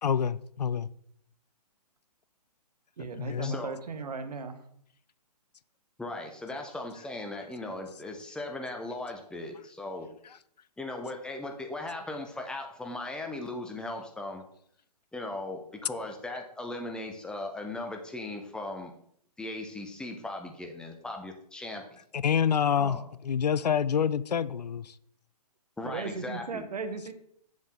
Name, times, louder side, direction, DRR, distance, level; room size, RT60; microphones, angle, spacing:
voice 1, 0.0-0.9 3.2-3.5 22.1-23.0 23.2-24.9, left 8 dB, 80° left, 0.5 m, -27 dB
voice 2, 3.0-4.6 25.8-27.1, right 4 dB, 70° right, 1.2 m, -37 dB
voice 3, 6.0-10.1 10.8-14.4 15.1-18.9 19.4-22.0 22.7-23.0 25.8-26.7, left 2 dB, 5° left, 0.8 m, -38 dB
8.0 x 7.3 x 3.7 m
hypercardioid pair, 135°, 21 cm